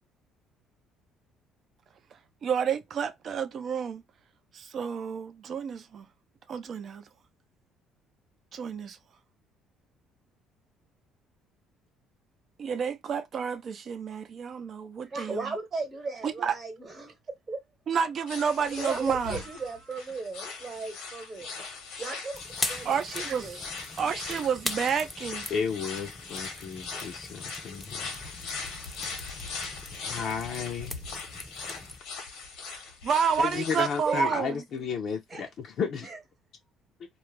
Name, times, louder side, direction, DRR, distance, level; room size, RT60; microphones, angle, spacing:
voice 1, 2.4-4.0 4.5-6.1 6.5-7.0 8.5-9.0 12.6-15.5 16.2-16.6 17.9-19.4 22.8-23.7 24.0-25.5 33.0-34.6, right 7 dB, 50° right, 0.5 m, -30 dB
voice 2, 15.1-17.1 17.5-17.6 18.8-21.7 22.0-22.4 22.7-23.0 23.4-23.6 34.1-34.4 35.3-35.5 36.0-36.2, right 3 dB, 30° right, 0.9 m, -35 dB
sound 1, 18.3-34.2, left 4 dB, 80° left, 0.9 m, -40 dB
sound 2, 22.3-32.0, left 1 dB, 10° left, 0.5 m, -41 dB
voice 3, 25.5-28.1 30.0-31.0 33.4-36.0, left 6 dB, 60° left, 0.5 m, -33 dB
2.3 x 2.1 x 3.1 m
cardioid pair, 90°, 0 cm